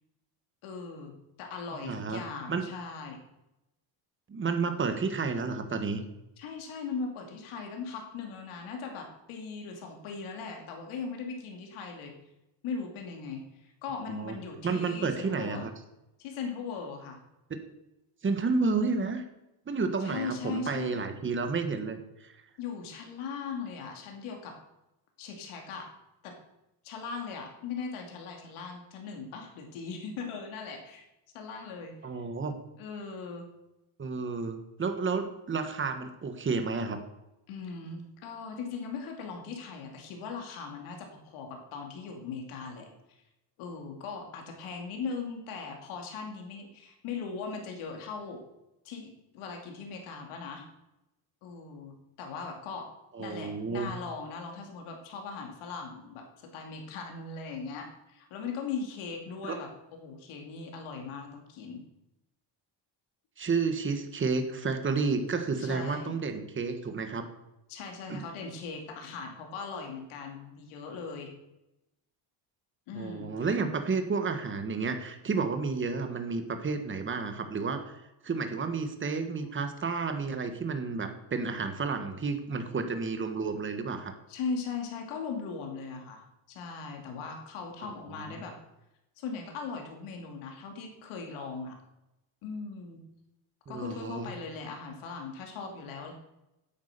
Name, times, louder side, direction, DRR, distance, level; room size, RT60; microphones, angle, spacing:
voice 1, 0.6-3.2 6.4-12.1 12.6-15.6 16.2-17.2 20.0-21.0 22.6-24.5 25.2-25.9 26.2-26.3 26.8-31.1 31.3-31.9 32.7-33.5 37.5-42.9 43.6-48.4 48.8-50.6 51.4-52.9 53.2-61.8 65.6-66.2 67.7-71.3 72.9-73.3 84.3-86.2 86.5-88.6 89.2-91.8 92.4-93.0 93.7-96.1, left 5 dB, 90° left, 2 dB, 2.7 m, -39 dB
voice 2, 1.8-2.2 2.5-2.6 4.3-6.0 14.1-14.4 14.6-15.7 18.2-19.2 19.7-22.3 32.0-32.5 34.0-37.0 53.1-53.9 59.4-59.6 63.4-67.3 68.1-68.2 72.9-84.1 87.8-87.9 88.2-88.4 93.7-94.3, right 4 dB, 25° right, 7 dB, 1.4 m, -31 dB
9.6 x 8.3 x 6.7 m, 0.90 s
cardioid pair, 130°, 47 cm